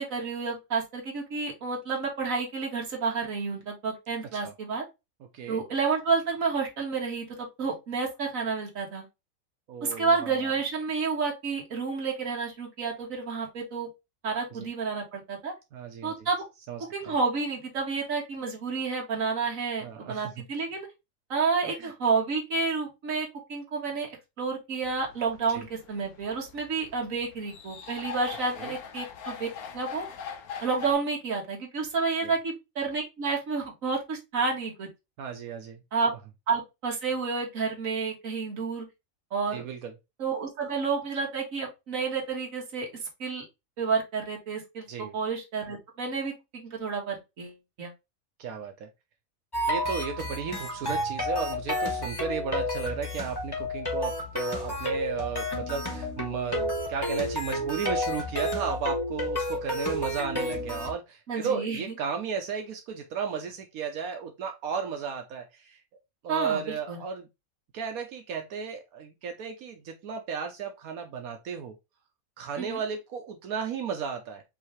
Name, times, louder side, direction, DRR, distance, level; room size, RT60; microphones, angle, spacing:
voice 1, 0.0-4.8 5.5-9.1 9.8-13.9 14.2-15.5 16.0-16.4 16.9-20.9 21.3-24.1 24.4-29.5 29.7-30.1 30.6-34.9 35.9-36.1 36.5-38.9 39.3-39.6 40.2-42.9 43.2-43.5 43.8-44.9 45.1-47.9 61.3-61.8 66.3-67.0 72.6-72.8, right 4 dB, 65° right, -1 dB, 1.8 m, -30 dB
voice 2, 9.7-10.5 14.5-14.6 15.7-16.1 16.7-16.8 17.1-17.2 19.8-20.4 21.8-21.9 25.5-25.6 28.6-28.7 32.2-32.3 35.2-35.8 39.5-39.9 44.9-45.1 48.4-48.9 49.7-65.8 66.2-67.3 67.7-71.7 72.4-74.4, right 6 dB, 80° right, 4 dB, 1.2 m, -34 dB
sound 1, 24.8-30.9, left 7 dB, 90° left, 1.3 m, -42 dB
sound 2, 49.5-60.9, left 1 dB, 15° left, 1.3 m, -31 dB
5.4 x 2.7 x 3.1 m, 0.23 s
omnidirectional pair, 1.5 m